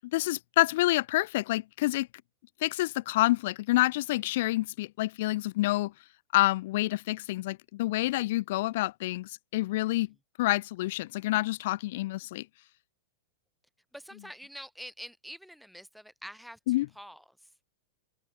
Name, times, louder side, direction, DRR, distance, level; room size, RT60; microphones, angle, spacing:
voice 1, 0.1-2.1 2.6-5.9 6.3-10.1 10.4-12.4 16.7-16.9, left 18 dB, 55° left, 0.9 m, -28 dB
voice 2, 13.9-17.5, equal, ahead, 6.0 m, -46 dB
figure-of-eight pair, 95°, 0 cm